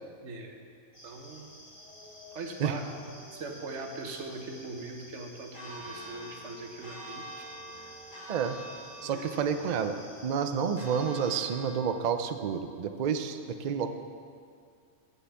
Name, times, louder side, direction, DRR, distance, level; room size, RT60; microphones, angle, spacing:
voice 1, 0.2-0.6 1.0-1.5 2.3-7.5 7.8-7.9 9.0-9.3, right 3 dB, 60° right, 3 dB, 1.3 m, -41 dB
sound 1, 0.9-11.4, left 1 dB, 35° left, 3.1 m, -51 dB
Church bell, 5.5-12.0, equal, 85° left, 3.3 m, -46 dB
voice 2, 9.0-9.9 10.2-13.9, right 7 dB, 80° right, 8 dB, 0.3 m, -29 dB
7.5 x 6.8 x 8.0 m, 2.2 s
omnidirectional pair, 1.4 m